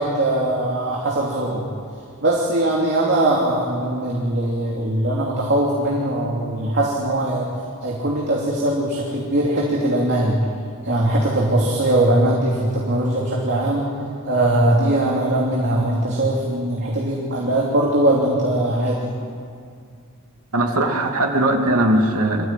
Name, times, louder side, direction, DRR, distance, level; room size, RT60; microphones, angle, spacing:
voice 1, 0.0-1.6 2.2-7.5 7.8-10.4 10.8-13.9 14.3-19.1, right 1 dB, 50° right, -3 dB, 3.0 m, -20 dB
voice 2, 20.5-22.5, right 1 dB, 80° right, 2 dB, 2.7 m, -19 dB
25.5 x 15.0 x 9.3 m, 2.2 s
head